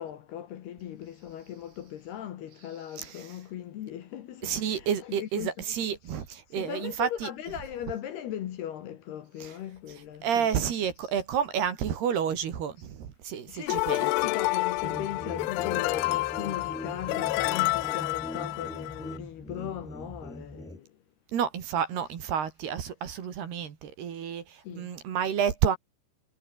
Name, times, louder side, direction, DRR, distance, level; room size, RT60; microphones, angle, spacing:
voice 1, 0.0-5.7 6.0-6.2 6.5-10.5 11.0-11.1 13.5-20.9 24.6-24.9, left 11 dB, 65° left, 3.1 m, -38 dB
voice 2, 3.0-3.4 4.4-7.3 9.4-9.6 10.2-14.1 21.3-25.8, right 8 dB, 60° right, 4.3 m, -30 dB
sound 1, 13.7-19.2, left 21 dB, 80° left, 3.1 m, -29 dB
sound 2, 14.8-20.8, equal, ahead, 2.4 m, -41 dB
omnidirectional pair, 5.7 m